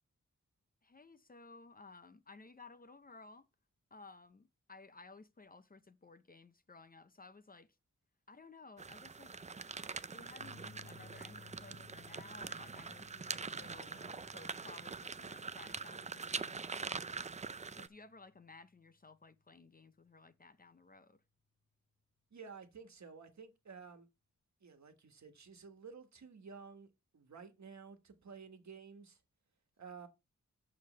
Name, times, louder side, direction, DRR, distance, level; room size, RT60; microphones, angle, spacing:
voice 1, 0.8-3.5 3.9-7.8 8.3-9.3 10.1-21.2, left 3 dB, 30° left, 0.5 m, -57 dB
sound 1, 8.8-17.9, right 4 dB, 25° right, 0.3 m, -44 dB
sound 2, 10.4-18.9, left 3 dB, 65° left, 1.0 m, -61 dB
voice 2, 22.3-24.1 24.6-26.9 27.1-29.2 29.8-30.1, right 5 dB, 65° right, 1.4 m, -52 dB
6.6 x 5.0 x 6.6 m
wide cardioid pair, 135°, 30 cm